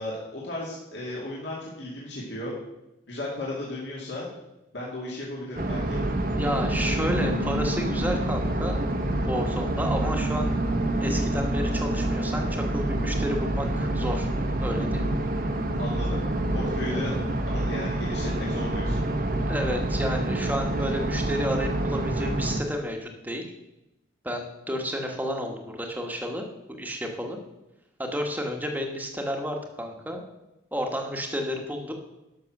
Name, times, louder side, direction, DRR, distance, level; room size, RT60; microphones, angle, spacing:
voice 1, 0.0-2.5 3.1-4.3 4.7-6.0 15.8-17.1 17.5-19.0, left 1 dB, 60° left, -5 dB, 2.3 m, -35 dB
sound 1, 5.5-22.6, right 1 dB, 45° right, 1.0 m, -27 dB
voice 2, 6.4-8.8 9.3-10.6 11.0-14.3 14.6-15.1 16.9-17.0 19.5-23.5 24.2-27.4 28.0-30.2 30.7-31.9, equal, 10° right, 3 dB, 1.3 m, -31 dB
12.0 x 6.5 x 6.0 m, 0.94 s
head